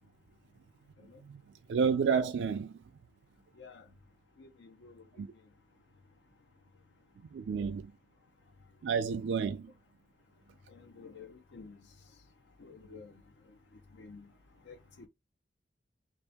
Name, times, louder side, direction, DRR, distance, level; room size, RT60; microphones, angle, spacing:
voice 1, 1.7-2.8 5.2-5.3 7.3-7.9 8.8-9.7, right 6 dB, 90° right, 0.3 m, -30 dB
voice 2, 4.4-5.2 10.7-11.8 12.6-13.1 13.9-14.2 14.7-15.1, left 4 dB, 85° left, 0.6 m, -51 dB
3.4 x 2.7 x 3.4 m
head